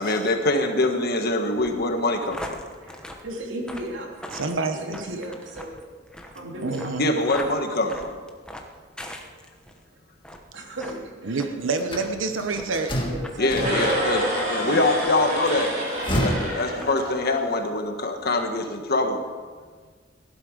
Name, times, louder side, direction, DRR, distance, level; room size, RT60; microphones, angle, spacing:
voice 1, 0.0-2.6 7.0-8.1 13.4-14.2 14.5-15.7 16.2-19.2, left 2 dB, 50° left, 5 dB, 1.5 m, -24 dB
sound 1, 1.6-9.8 10.2-10.5 10.8-11.0 11.4-11.5 12.0-12.1 12.6-12.7 13.2-13.3 13.6-13.9 14.4-14.5 15.0-15.8 16.1-16.5 16.8-16.9, left 1 dB, 5° left, 1.1 m, -40 dB
voice 2, 2.8-4.2 4.7-5.8 6.2-7.1 10.5-11.5 13.0-14.0, equal, 65° right, 0 dB, 2.9 m, -35 dB
voice 3, 4.3-5.0 6.6-7.1 11.3-12.9, right 3 dB, 80° right, 7 dB, 0.9 m, -27 dB
opening closing the window, 11.8-14.3 15.7-17.5, equal, 25° left, 1.8 m, -30 dB
sound 2, 13.5-17.7, equal, 45° right, 3.7 m, -28 dB
16.5 x 11.0 x 5.1 m, 1.5 s
head